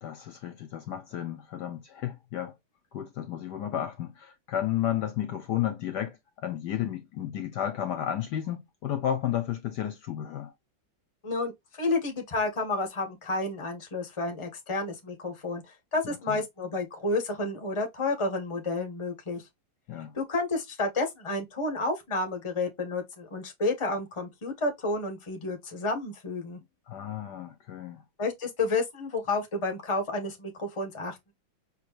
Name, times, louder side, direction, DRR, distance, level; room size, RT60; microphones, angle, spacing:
voice 1, 0.0-2.6 2.9-10.5 16.0-16.4 19.9-20.1 26.9-28.0, left 11 dB, 65° left, 1.2 m, -32 dB
voice 2, 11.2-19.4 20.1-26.6 28.2-31.3, left 2 dB, 20° left, 1.0 m, -30 dB
5.8 x 3.2 x 2.4 m
omnidirectional pair, 2.2 m